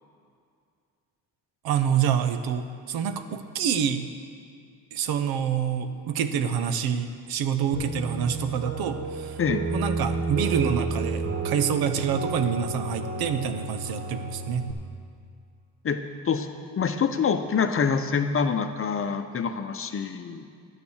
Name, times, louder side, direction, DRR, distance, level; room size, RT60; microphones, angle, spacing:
voice 1, 1.6-4.0 4.9-9.4 9.7-14.7, right 8 dB, 70° right, 9 dB, 0.9 m, -27 dB
sound 1, 7.7-14.7, right 3 dB, 40° right, 1.7 m, -31 dB
voice 2, 9.4-9.7 15.8-16.0 16.3-16.5 16.8-20.5, left 6 dB, 35° left, 8 dB, 0.8 m, -26 dB
11.5 x 7.0 x 6.4 m, 2.2 s
supercardioid pair, 75°, 39 cm